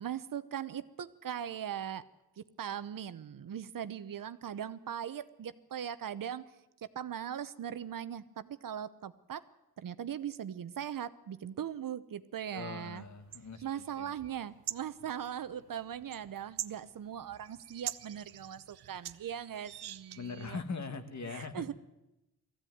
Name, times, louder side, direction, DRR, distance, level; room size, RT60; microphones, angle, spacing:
voice 1, 0.0-2.0 2.4-6.4 6.9-9.4 9.8-13.0 13.6-20.6 21.3-21.7, right 9 dB, 60° right, 14 dB, 0.9 m, -40 dB
voice 2, 12.5-14.1 20.2-21.7, left 4 dB, 45° left, 9 dB, 1.8 m, -41 dB
sound 1, 13.0-20.4, right 12 dB, 85° right, 0.8 m, -46 dB
19.5 x 15.0 x 9.4 m, 0.95 s
wide cardioid pair, 145°, 37 cm